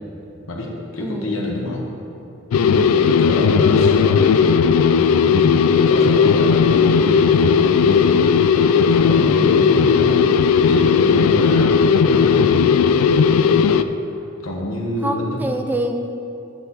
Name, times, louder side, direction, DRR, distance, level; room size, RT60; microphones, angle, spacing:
voice 1, 0.5-1.9 2.8-4.4 4.9-5.6 5.9-8.2 8.8-12.5 13.7-13.9 14.4-15.4, left 1 dB, 70° left, -2 dB, 1.3 m, -28 dB
voice 2, 1.0-1.4 2.6-3.0 15.0-16.2, right 1 dB, 10° right, 5 dB, 0.4 m, -26 dB
sound 1, 2.5-13.8, left 6 dB, 90° left, 0.3 m, -15 dB
8.5 x 7.8 x 4.1 m, 2.8 s
head